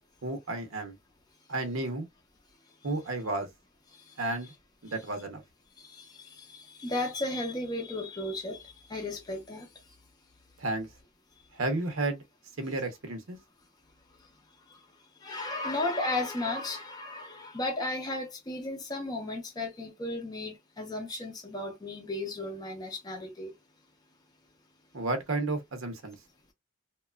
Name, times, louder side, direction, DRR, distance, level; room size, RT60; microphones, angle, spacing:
voice 1, 0.2-0.9 1.5-2.1 2.8-3.5 4.2-4.5 4.9-5.4 10.6-10.9 11.6-12.2 12.6-13.4 24.9-26.1, right 2 dB, 85° right, 0.8 m, -32 dB
voice 2, 3.9-4.5 4.9-5.0 5.8-9.7 15.2-23.5, left 2 dB, 20° left, 0.5 m, -35 dB
2.9 x 2.3 x 2.2 m
head